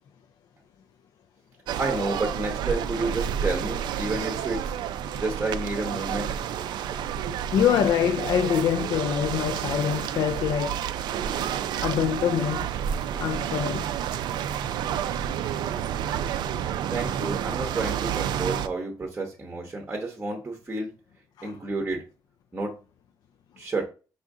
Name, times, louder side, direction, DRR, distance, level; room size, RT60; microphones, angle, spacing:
sound 1, 1.7-18.7, right 9 dB, 75° right, 0.4 m, -30 dB
voice 1, 1.8-4.7 5.1-6.3 16.9-20.9 21.4-22.0 22.5-22.8 23.6-23.8, right 2 dB, 15° right, 0.8 m, -30 dB
voice 2, 7.5-10.8 11.8-12.7 13.1-13.8 21.4-21.6, left 9 dB, 60° left, 0.3 m, -25 dB
5.5 x 2.5 x 3.6 m
cardioid pair, 155°, 8 cm